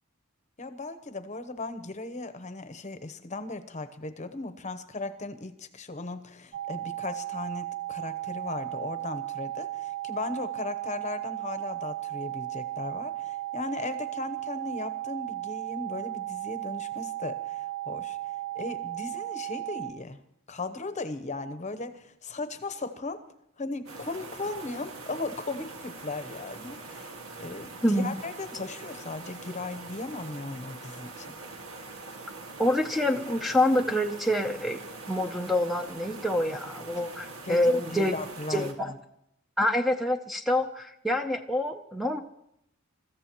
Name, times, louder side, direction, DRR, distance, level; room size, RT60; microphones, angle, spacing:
voice 1, 0.6-18.2 18.5-20.2 20.5-23.2 23.6-27.1 27.4-31.3 37.4-39.0, left 3 dB, 35° left, 11 dB, 0.9 m, -37 dB
sound 1, 6.5-19.9, right 15 dB, 40° right, 0.9 m, -35 dB
sound 2, 23.9-38.7, right 3 dB, 80° right, 1.9 m, -43 dB
voice 2, 27.8-28.1 32.6-34.8 35.1-38.1 38.5-38.9 39.6-42.2, left 1 dB, ahead, 5 dB, 0.6 m, -26 dB
28.5 x 14.5 x 3.0 m, 0.76 s
head